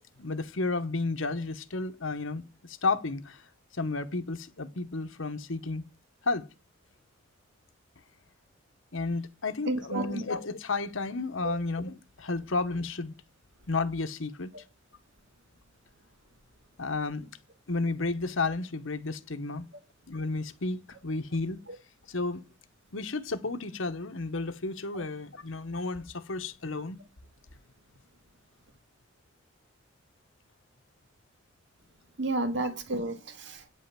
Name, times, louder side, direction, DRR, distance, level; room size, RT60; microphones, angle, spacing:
voice 1, 0.2-3.5 3.7-5.8 6.2-6.5 8.9-13.1 13.7-14.5 16.8-17.3 17.7-19.7 20.1-21.6 22.1-22.4 22.9-27.0, left 3 dB, 75° left, 1.1 m, -32 dB
voice 2, 9.7-10.2 11.4-11.6 24.9-25.0 32.2-33.6, right 2 dB, 60° right, 1.8 m, -31 dB
9.4 x 5.6 x 7.6 m
head